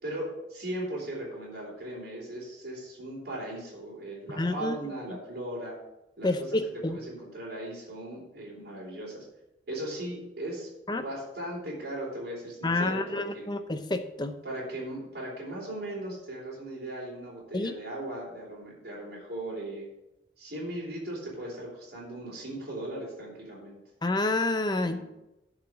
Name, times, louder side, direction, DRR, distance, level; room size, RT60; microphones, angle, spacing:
voice 1, 0.0-5.8 6.2-9.3 9.7-13.4 14.4-19.9 20.4-23.8 25.0-25.1, right 1 dB, 55° right, -5 dB, 3.7 m, -38 dB
voice 2, 4.4-4.8 5.1-5.2 6.2-7.0 10.9-11.0 12.6-14.3 17.5-17.7 24.0-25.0, left 2 dB, 25° left, 8 dB, 0.6 m, -28 dB
10.5 x 4.9 x 6.2 m, 0.93 s
head